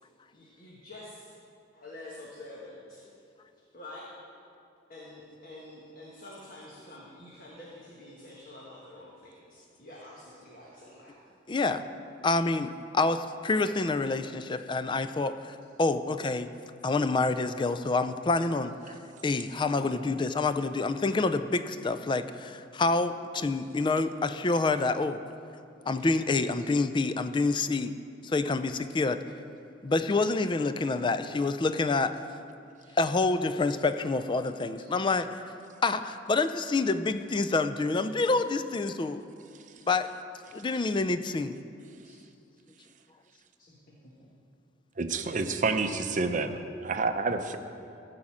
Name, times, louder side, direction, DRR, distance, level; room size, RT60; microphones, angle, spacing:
voice 1, 0.3-1.3 1.7-3.0 3.7-4.1 4.9-11.2 26.6-26.7 42.0-42.2 43.6-43.8 44.0-44.3, left 1 dB, 50° left, -5 dB, 1.5 m, -47 dB
voice 2, 11.5-11.8 12.2-16.5 16.8-19.0 19.2-25.2 25.9-27.9 28.2-29.2 29.8-32.2 33.0-35.4 35.8-39.2 39.9-40.1 40.5-41.6, left 3 dB, 25° left, 11 dB, 0.4 m, -27 dB
voice 3, 45.0-47.6, right 3 dB, 40° right, 8 dB, 0.6 m, -29 dB
14.5 x 5.0 x 7.3 m, 2.6 s
head